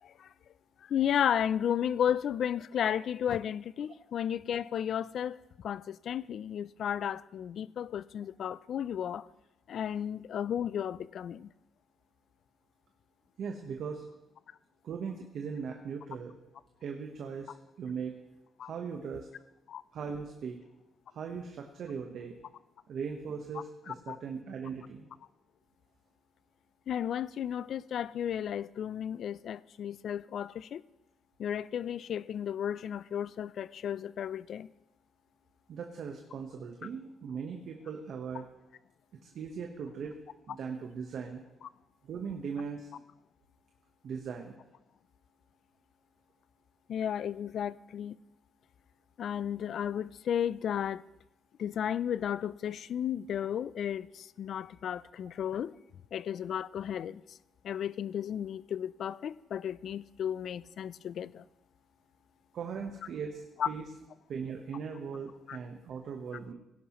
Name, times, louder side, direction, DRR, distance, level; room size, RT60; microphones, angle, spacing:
voice 1, 0.0-0.3 0.8-9.3 9.7-11.5 18.6-18.7 19.7-19.8 23.9-24.2 26.9-30.8 31.4-34.7 41.6-41.7 46.9-48.2 49.2-51.0 51.6-55.7 56.1-57.4 57.6-61.4 63.6-63.7 65.5-65.6, left 9 dB, 65° left, 0.3 m, -33 dB
voice 2, 13.4-14.0 14.8-16.3 16.8-18.1 18.6-19.3 19.9-20.6 21.1-22.4 22.9-25.1 35.7-38.5 39.2-40.2 40.5-41.4 42.0-42.9 44.0-44.5 62.5-63.9 64.3-66.5, right 6 dB, 65° right, 1.0 m, -39 dB
17.5 x 11.0 x 3.0 m
cardioid pair, 90°, 0 cm